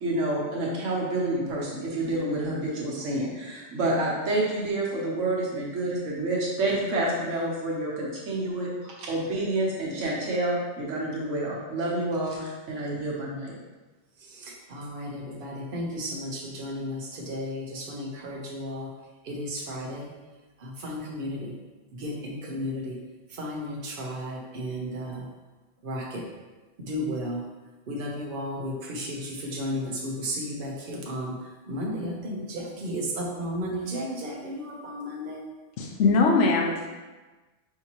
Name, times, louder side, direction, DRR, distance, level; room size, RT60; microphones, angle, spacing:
voice 1, 0.0-13.5, right 1 dB, 80° right, -4 dB, 1.4 m, -28 dB
voice 2, 14.3-18.9 19.2-20.1 20.6-21.5 21.9-23.0 23.3-25.3 25.8-26.2 26.8-27.4 27.9-31.4 31.7-35.4, equal, 50° right, -2 dB, 0.9 m, -34 dB
voice 3, 35.8-36.9, left 3 dB, 75° left, 0 dB, 1.0 m, -21 dB
5.7 x 2.8 x 2.9 m, 1.2 s
omnidirectional pair, 1.3 m